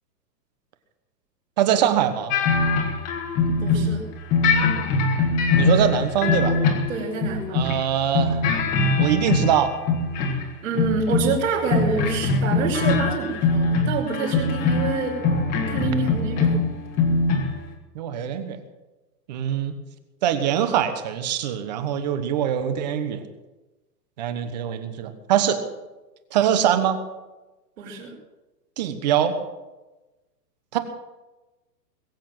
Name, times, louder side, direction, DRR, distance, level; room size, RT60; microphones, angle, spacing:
voice 1, 1.6-2.4 5.6-6.6 7.5-8.5 9.0-9.7 17.9-18.6 19.3-19.7 20.2-23.2 24.2-25.6 26.3-27.0 28.8-29.3 30.7-30.8, right 9 dB, 25° right, 9 dB, 1.2 m, -23 dB
sound 1, 2.3-4.0 4.3-7.8 8.1-10.5 10.7-11.4 11.7-17.6, left 3 dB, 15° left, 1.6 m, -22 dB
voice 2, 3.5-4.1 6.9-7.6 10.6-15.2 15.7-16.6 27.8-28.1, right 4 dB, 50° right, -4 dB, 4.9 m, -27 dB
21.5 x 8.5 x 7.4 m, 1.1 s
hypercardioid pair, 175°, 49 cm